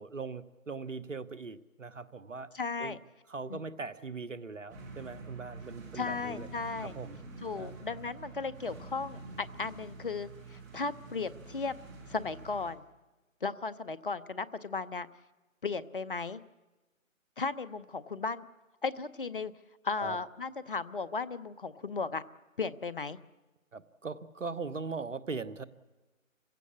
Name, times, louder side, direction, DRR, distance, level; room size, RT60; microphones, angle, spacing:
voice 1, 0.0-2.5 2.8-3.0 3.3-6.5 6.8-7.2 7.6-7.7 20.0-20.2 23.7-25.6, right 4 dB, 65° right, 16 dB, 1.3 m, -40 dB
voice 2, 2.5-3.0 3.5-3.6 5.9-6.9 7.4-11.8 12.1-12.8 13.4-15.1 15.6-16.4 17.4-18.4 18.8-19.5 19.8-22.2 22.6-23.2, left 4 dB, 40° left, 17 dB, 0.8 m, -35 dB
Tractor And Topper Compressed, 4.7-12.7, right 3 dB, 15° right, 1.7 m, -47 dB
25.0 x 16.5 x 8.4 m, 1.2 s
figure-of-eight pair, 155°, 40 cm